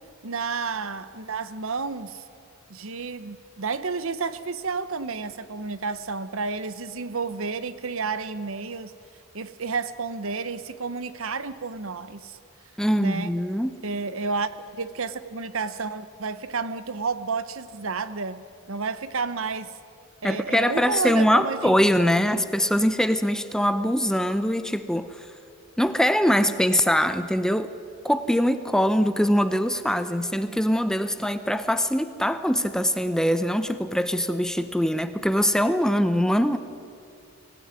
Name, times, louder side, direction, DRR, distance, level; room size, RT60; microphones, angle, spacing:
voice 1, 0.2-2.2 2.7-8.9 9.3-12.4 13.0-13.3 13.8-19.7 20.2-21.8 22.3-22.5, right 4 dB, 70° right, 14 dB, 0.9 m, -31 dB
voice 2, 12.8-13.8 20.2-25.3 25.8-27.7 28.0-36.6, equal, 5° left, 10 dB, 0.6 m, -23 dB
23.5 x 16.0 x 9.7 m, 2.5 s
head